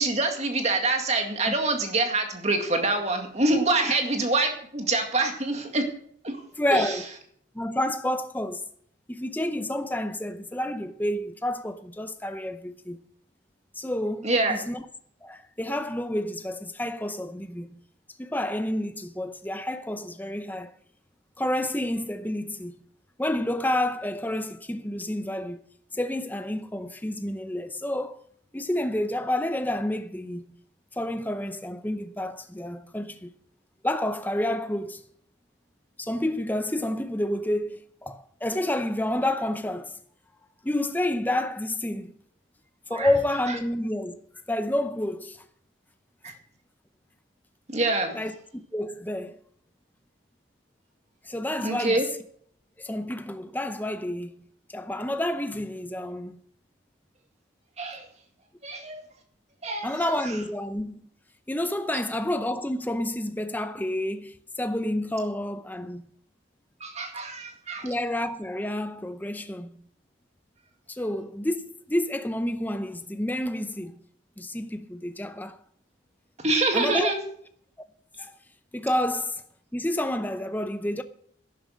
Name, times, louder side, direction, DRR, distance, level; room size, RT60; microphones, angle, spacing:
voice 1, 0.0-5.9 6.2-6.4 6.7-7.0 14.2-14.6 42.9-43.1 46.2-46.3 47.7-48.2 51.6-52.0 57.8-58.1 58.6-59.0 59.6-59.9 66.8-67.9 76.4-77.2, right 2 dB, 35° right, 2.1 m, -25 dB
voice 2, 6.6-7.0 7.5-8.6 9.1-13.0 13.8-14.8 15.2-17.8 18.2-20.7 21.4-22.8 23.2-25.6 25.9-28.2 28.5-30.4 31.0-33.3 33.8-35.0 36.0-40.0 40.6-42.1 42.9-44.2 44.5-45.4 48.1-49.4 51.2-52.1 52.8-54.3 54.7-56.4 59.8-61.0 61.5-66.0 67.8-69.7 70.9-74.0 74.4-75.6 76.7-77.1 78.2-78.3 78.7-79.4 79.7-81.0, left 1 dB, 10° left, 0.6 m, -29 dB
11.5 x 10.0 x 6.4 m
head